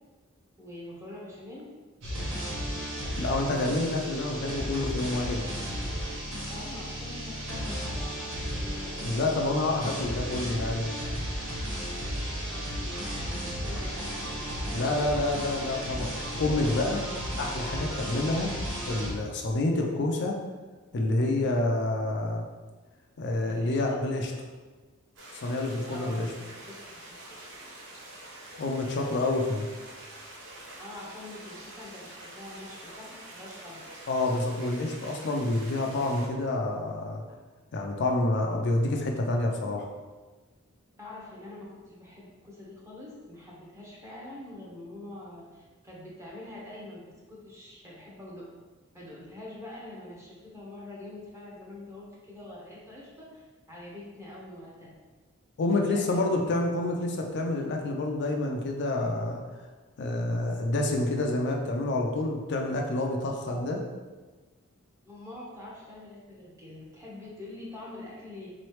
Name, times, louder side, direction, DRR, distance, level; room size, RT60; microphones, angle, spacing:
voice 1, 0.6-1.7 2.0-2.8 6.5-9.1 12.9-14.9 23.5-23.8 25.9-26.3 26.7-26.8 27.1-27.2 30.8-33.8 41.0-47.0 47.3-48.4 48.9-54.9 55.7-56.4 63.5-63.6 65.0-68.5, left 1 dB, 15° right, -5 dB, 0.9 m, -45 dB
sound 1, 2.0-19.1, equal, 75° right, 1.2 m, -34 dB
voice 2, 3.2-5.5 9.0-11.0 14.7-17.1 17.4-18.5 18.9-20.4 20.9-22.4 23.2-24.3 25.4-26.3 28.6-29.7 34.1-37.2 37.7-39.9 55.6-59.4 60.0-63.8, left 2 dB, 55° left, 2 dB, 0.4 m, -28 dB
sound 2, 25.2-36.3, right 1 dB, 60° right, 0.8 m, -46 dB
3.9 x 3.1 x 3.1 m, 1.3 s
head